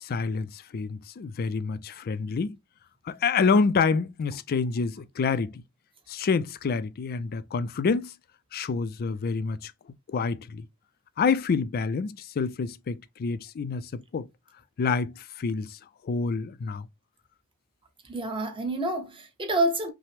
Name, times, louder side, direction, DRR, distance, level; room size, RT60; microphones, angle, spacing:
voice 1, 0.0-2.6 3.1-5.6 6.1-8.1 8.5-9.7 10.1-10.7 11.2-14.3 14.8-16.9, left 5 dB, 45° left, 0.4 m, -27 dB
voice 2, 18.0-19.9, right 1 dB, 25° right, 0.9 m, -28 dB
5.6 x 2.1 x 3.3 m
head